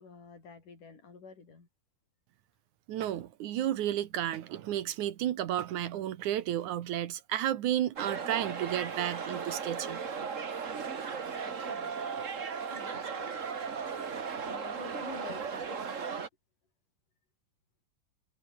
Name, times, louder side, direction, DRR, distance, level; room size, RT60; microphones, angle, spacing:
voice 1, 0.0-1.7 11.4-11.9 12.7-13.4 13.9-14.0 14.5-16.0, left 4 dB, 75° left, 7.2 m, -49 dB
voice 2, 2.9-10.0, right 12 dB, 70° right, 2.6 m, -32 dB
sound 1, 8.0-16.3, right 6 dB, 45° right, 1.0 m, -36 dB
omnidirectional pair, 3.7 m